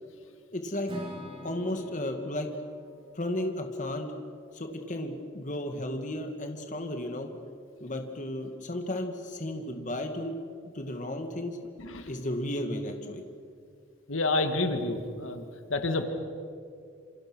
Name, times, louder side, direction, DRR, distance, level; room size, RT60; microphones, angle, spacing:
voice 1, 0.5-0.9 1.4-2.5 3.1-4.1 4.5-7.3 7.8-10.3 10.6-11.6 12.1-13.2, left 1 dB, 40° left, 5 dB, 2.0 m, -34 dB
Acoustic guitar / Strum, 0.9-4.9, equal, 25° right, 4.3 m, -46 dB
voice 2, 14.1-15.4 15.7-16.0, left 2 dB, 80° left, 6 dB, 2.1 m, -28 dB
28.0 x 27.0 x 6.3 m, 2.3 s
head